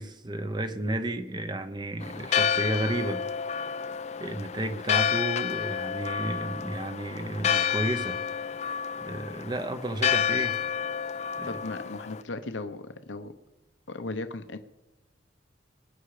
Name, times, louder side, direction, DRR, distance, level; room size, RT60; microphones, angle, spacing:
voice 1, 0.0-3.2 3.5-3.7 4.2-8.6 9.0-10.6 11.4-11.6, right 1 dB, 25° right, 9 dB, 0.7 m, -32 dB
Church bell, 2.0-12.2, left 8 dB, 35° left, 0.4 m, -30 dB
voice 2, 11.4-13.3 13.9-14.6, left 2 dB, 85° left, 9 dB, 1.0 m, -36 dB
21.0 x 9.9 x 5.0 m, 1.1 s
head